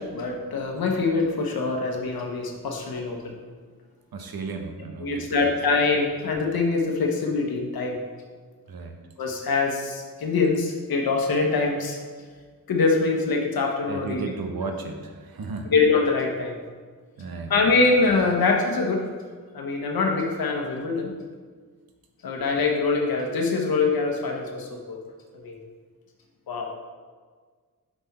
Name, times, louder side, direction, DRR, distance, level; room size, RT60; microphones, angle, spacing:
voice 1, 0.0-3.3 5.0-8.0 9.2-12.0 12.7-14.2 15.7-16.6 17.5-19.1 19.5-21.1 22.2-25.0 25.3-25.6 26.5-26.7, left 4 dB, 85° left, 1 dB, 1.0 m, -24 dB
voice 2, 4.1-5.5 8.7-9.0 13.9-15.7 17.2-17.7, right 4 dB, 80° right, 4 dB, 0.9 m, -34 dB
6.0 x 5.7 x 4.1 m, 1.5 s
wide cardioid pair, 80°, 35 cm